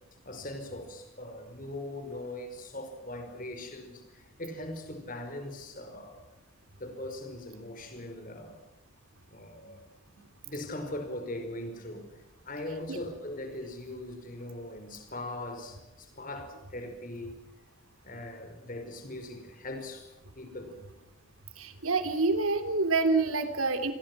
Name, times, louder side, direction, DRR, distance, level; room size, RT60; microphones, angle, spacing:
voice 1, 0.3-6.2 6.8-8.6 9.3-12.1 12.5-17.4 18.0-20.8, left 1 dB, 40° left, 5.2 m, -40 dB
voice 2, 21.6-23.9, right 3 dB, 90° right, 3.3 m, -27 dB
29.0 x 22.5 x 6.2 m
head